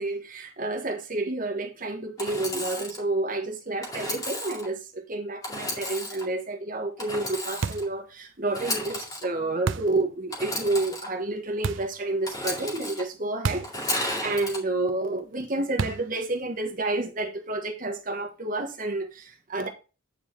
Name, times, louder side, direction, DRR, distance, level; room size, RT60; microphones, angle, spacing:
voice 1, 0.0-13.7 13.9-19.7, right 2 dB, 40° right, 1.4 m, -30 dB
Engine / Sawing, 2.2-3.0 3.8-4.7 5.4-6.3 7.0-7.9 8.5-9.2 10.3-11.1 12.2-13.0 13.6-14.6, left 1 dB, 20° left, 2.3 m, -33 dB
sound 1, 7.6-8.0 9.7-10.0 11.6-12.0 13.4-13.8 14.1-14.2 15.8-16.2, right 5 dB, 65° right, 0.5 m, -30 dB
9.0 x 4.8 x 4.5 m
head